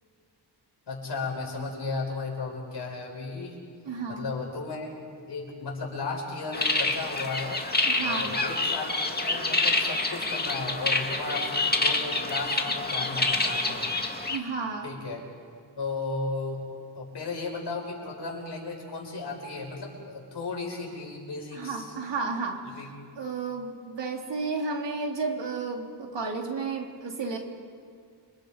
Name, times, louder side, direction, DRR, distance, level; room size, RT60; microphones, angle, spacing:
voice 1, 0.9-3.6 4.1-4.9 5.3-7.6 8.0-13.9 14.8-15.2 15.8-16.6 16.9-21.8 22.7-22.9, left 3 dB, 70° left, 0 dB, 6.1 m, -35 dB
voice 2, 3.8-4.3 7.9-8.4 14.3-14.9 21.5-22.9 23.2-27.4, right 4 dB, 80° right, 1 dB, 3.3 m, -32 dB
sound 1, 6.5-14.4, left 2 dB, 20° left, 2.0 m, -27 dB
30.0 x 25.5 x 5.3 m, 2.2 s
wide cardioid pair, 95°, 43 cm